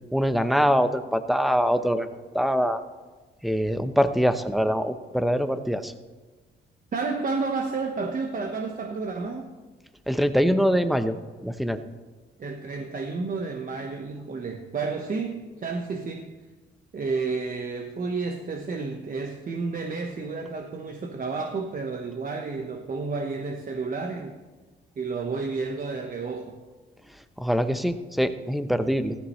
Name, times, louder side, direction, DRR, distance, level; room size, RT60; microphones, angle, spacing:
voice 1, 0.1-2.1 2.3-2.8 3.4-5.9 10.1-11.1 11.4-11.8 27.4-29.2, equal, ahead, 9 dB, 0.9 m, -23 dB
voice 2, 6.9-9.5 12.4-16.3 16.9-24.4 25.0-26.6, right 4 dB, 45° right, 4 dB, 1.2 m, -31 dB
16.0 x 14.0 x 3.2 m, 1.3 s
cardioid pair, 90°, 20 cm